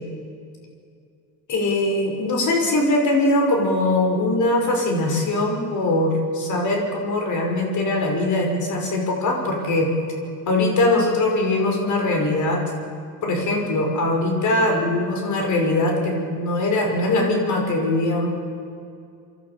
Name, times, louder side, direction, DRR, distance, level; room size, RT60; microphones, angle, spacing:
voice 1, 1.5-9.9 10.5-12.6 13.2-18.3, left 2 dB, 45° left, 2 dB, 5.9 m, -21 dB
28.5 x 12.0 x 8.8 m, 2.4 s
supercardioid pair, 90°, 40 cm